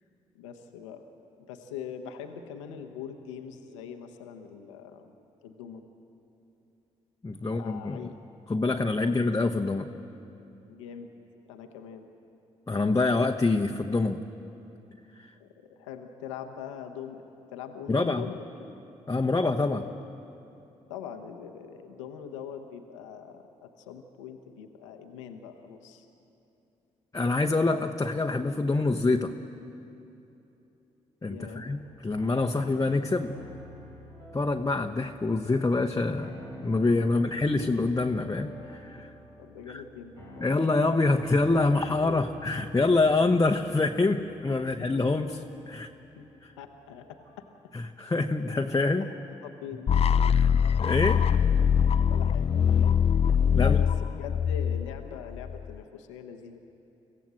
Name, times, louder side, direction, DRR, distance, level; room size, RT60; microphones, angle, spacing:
voice 1, 0.3-1.0 1.5-5.1 5.4-5.9 7.4-8.2 9.0-9.1 10.6-11.1 11.5-12.1 15.4-17.2 17.5-18.7 19.2-20.0 20.9-26.1 31.2-31.7 39.4-40.4 44.8-45.2 45.7-45.8 46.2-46.3 46.6-47.5 47.8-47.9 49.4-50.0 50.5-50.6 52.1-53.0 53.5-56.6, left 7 dB, 85° left, 5 dB, 1.0 m, -42 dB
voice 2, 7.2-8.1 8.5-9.9 12.7-14.2 15.2-15.3 17.9-18.2 19.1-19.9 27.1-29.3 31.2-33.3 34.3-39.1 40.4-45.4 45.7-45.9 47.7-49.1 50.3-50.5 50.8-51.2 53.6-53.8, left 3 dB, 25° left, 3 dB, 1.0 m, -26 dB
sound 1, 31.3-47.5, equal, 80° right, 6.2 m, -48 dB
sound 2, 49.9-55.8, left 7 dB, 40° left, 0.5 m, -23 dB
26.0 x 15.5 x 7.6 m, 2.9 s
hypercardioid pair, 40°, 15 cm